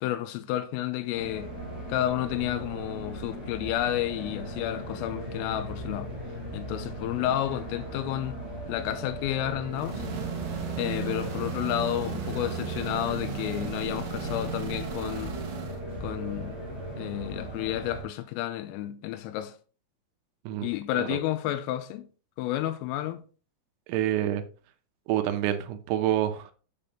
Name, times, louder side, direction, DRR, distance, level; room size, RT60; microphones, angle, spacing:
voice 1, 0.0-1.5 1.9-6.1 6.5-8.4 8.7-10.1 10.8-15.4 16.0-16.6 17.0-19.6 20.6-22.1 22.4-23.2, left 13 dB, 85° left, 3.2 m, -31 dB
sound 1, 1.1-18.0, right 1 dB, 30° left, 5.1 m, -38 dB
sound 2, 9.7-15.8, right 7 dB, 65° right, 2.2 m, -35 dB
voice 2, 23.9-24.4 25.1-26.5, right 12 dB, 85° right, 3.4 m, -27 dB
7.7 x 6.9 x 2.9 m
omnidirectional pair, 5.9 m